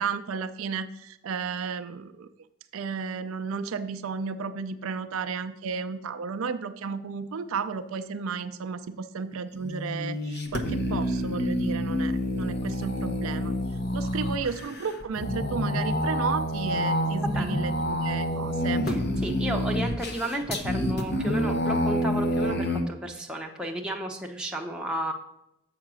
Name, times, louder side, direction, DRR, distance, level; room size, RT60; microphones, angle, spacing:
voice 1, 0.0-2.3 2.7-13.6 13.9-18.9, right 5 dB, 65° right, 10 dB, 0.4 m, -33 dB
sound 1, 9.5-22.8, left 1 dB, 45° left, 0.9 m, -28 dB
voice 2, 18.9-25.1, right 1 dB, 5° right, 0 dB, 0.7 m, -33 dB
7.4 x 5.8 x 6.1 m, 0.84 s
head